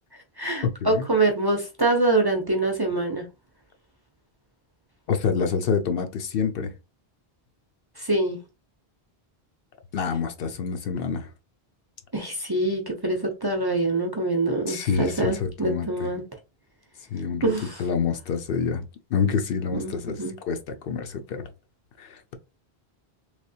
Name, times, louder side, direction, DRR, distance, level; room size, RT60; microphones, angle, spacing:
voice 1, 0.4-3.3 8.0-8.4 12.1-16.2 17.4-17.8 19.7-20.3, right 2 dB, 25° right, 0.6 m, -25 dB
voice 2, 5.1-6.7 9.9-11.3 14.7-16.1 17.1-17.5 17.8-18.9 19.1-21.5 22.0-22.3, left 6 dB, 65° left, 0.7 m, -27 dB
3.3 x 3.1 x 2.7 m
omnidirectional pair, 1.0 m